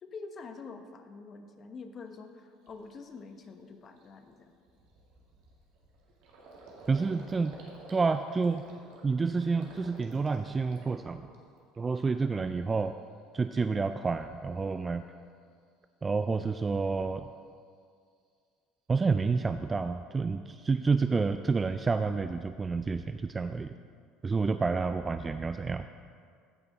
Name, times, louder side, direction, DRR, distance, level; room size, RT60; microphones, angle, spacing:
voice 1, 0.0-4.5, left 4 dB, 40° left, 7 dB, 1.0 m, -46 dB
Gurgling, 2.1-2.2 2.7-2.9 3.3-3.5 3.7-11.8 12.1-12.7, right 2 dB, 70° right, 2.0 m, -52 dB
voice 2, 6.9-7.5 7.9-8.6 9.0-11.3 11.8-12.9 13.3-15.0 16.0-17.3 18.9-23.7 24.2-25.9, right 4 dB, 25° right, 10 dB, 0.3 m, -29 dB
15.5 x 5.6 x 4.1 m, 2.2 s
hypercardioid pair, 75°, 0 cm